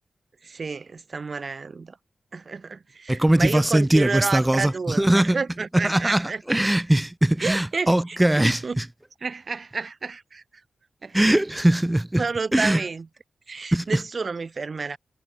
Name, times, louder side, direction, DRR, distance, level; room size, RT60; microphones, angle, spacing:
voice 1, 0.4-2.0 2.3-6.4 7.4-8.8 9.2-10.4 11.0-11.2 12.2-13.0 13.5-15.0, right 4 dB, 50° right, 1.3 m, -30 dB
voice 2, 3.1-5.4 5.7-8.9 11.1-12.3 12.5-12.8 13.7-14.0, right 1 dB, 10° right, 0.7 m, -21 dB
wide cardioid pair, 95°, 0 cm